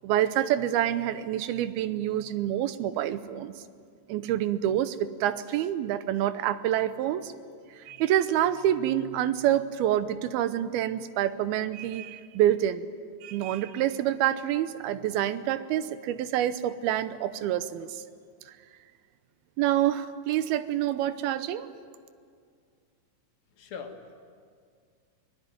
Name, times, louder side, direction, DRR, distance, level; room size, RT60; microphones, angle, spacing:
voice 1, 0.0-3.5 4.1-7.3 7.9-12.9 13.2-17.9 19.6-21.7, right 12 dB, 80° right, 13 dB, 2.7 m, -27 dB
voice 2, 23.5-24.2, left 5 dB, 70° left, 4 dB, 3.5 m, -42 dB
24.0 x 18.5 x 9.4 m, 2.1 s
omnidirectional pair, 4.4 m